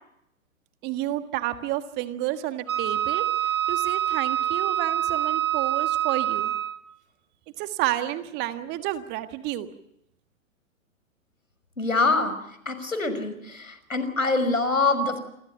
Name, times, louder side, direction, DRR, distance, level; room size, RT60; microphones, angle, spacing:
voice 1, 0.8-3.3 3.7-6.5 7.6-9.7, right 14 dB, 25° right, 10 dB, 1.6 m, -30 dB
Wind instrument woodwind instrument, 2.7-6.9, right 12 dB, 85° right, 1.9 m, -26 dB
voice 2, 11.8-12.3 12.7-15.2, left 3 dB, 80° left, 11 dB, 5.9 m, -24 dB
28.0 x 24.5 x 5.7 m, 0.78 s
figure-of-eight pair, 110°, 40 cm